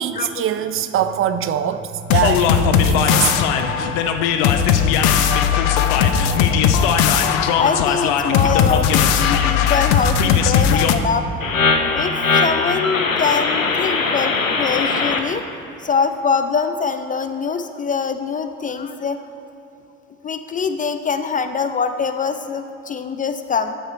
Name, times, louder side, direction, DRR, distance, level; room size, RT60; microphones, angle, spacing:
voice 1, 0.0-3.7, right 9 dB, 35° right, 11 dB, 0.5 m, -23 dB
sound 1, 2.1-10.9, left 8 dB, 55° left, 0.8 m, -17 dB
voice 2, 7.6-11.3 11.9-15.4 15.8-19.2 20.2-23.7, left 5 dB, 20° left, 9 dB, 0.5 m, -23 dB
sound 2, 11.4-15.2, left 4 dB, 90° left, 0.8 m, -20 dB
12.5 x 8.0 x 4.5 m, 2.8 s
figure-of-eight pair, 60°, 39 cm